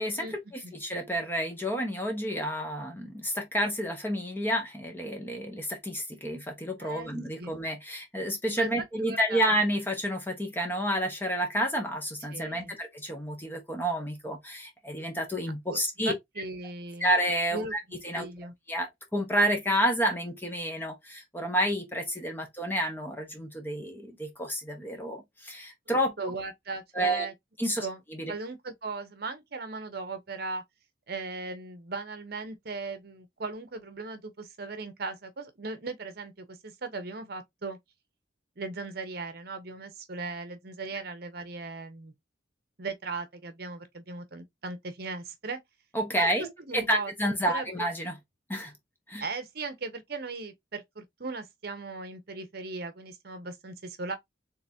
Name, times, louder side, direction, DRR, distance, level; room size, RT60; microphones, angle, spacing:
voice 1, 0.5-16.1 17.0-18.3 18.7-26.1 26.9-27.3 27.6-27.9 45.9-46.5 46.7-48.2 48.5-48.7 49.1-49.2, equal, 10° left, 0.9 m, -30 dB
voice 2, 8.5-9.4 12.3-12.8 15.7-17.1 17.5-17.7 18.1-18.5 26.2-27.3 27.8-28.0 28.3-30.6 31.1-37.8 38.6-42.1 42.8-45.6 46.2-47.1 47.5-47.9 49.2-54.2, right 3 dB, 55° right, 0.9 m, -38 dB
3.8 x 3.5 x 2.7 m
head